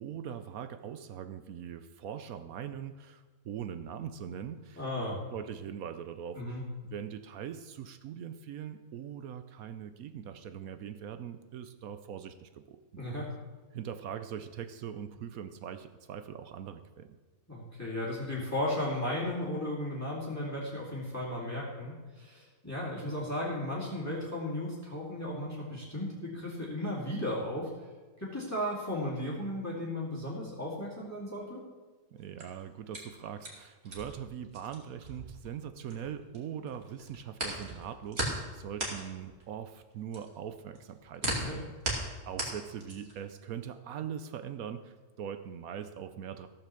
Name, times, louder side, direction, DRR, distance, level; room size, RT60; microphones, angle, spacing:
voice 1, 0.0-4.8 5.3-6.4 6.8-13.0 13.7-17.1 32.1-41.6 42.0-46.5, right 8 dB, 70° right, 9 dB, 1.1 m, -41 dB
voice 2, 4.8-5.2 6.4-6.6 13.0-13.3 17.5-27.7 28.2-31.6 41.2-41.6, left 1 dB, 10° left, -6 dB, 2.4 m, -35 dB
sound 1, 32.2-36.4 36.7-43.3, right 2 dB, 40° right, 2.6 m, -37 dB
15.0 x 5.8 x 6.9 m, 1.3 s
omnidirectional pair, 1.6 m